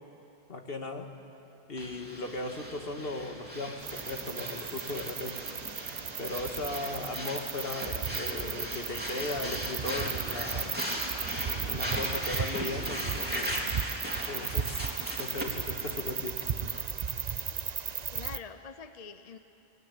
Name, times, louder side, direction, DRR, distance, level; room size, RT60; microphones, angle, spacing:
voice 1, 0.5-1.1 1.7-5.4 6.2-10.8 11.6-13.7 14.2-16.4, left 2 dB, 65° left, 4 dB, 2.0 m, -37 dB
Breathing, 1.8-16.8, equal, 10° right, 3.1 m, -38 dB
sound 1, 3.8-18.4, right 6 dB, 45° right, 0.8 m, -36 dB
voice 2, 18.1-19.4, left 6 dB, 40° left, 10 dB, 0.8 m, -45 dB
23.5 x 20.5 x 9.9 m, 3.0 s
omnidirectional pair, 1.1 m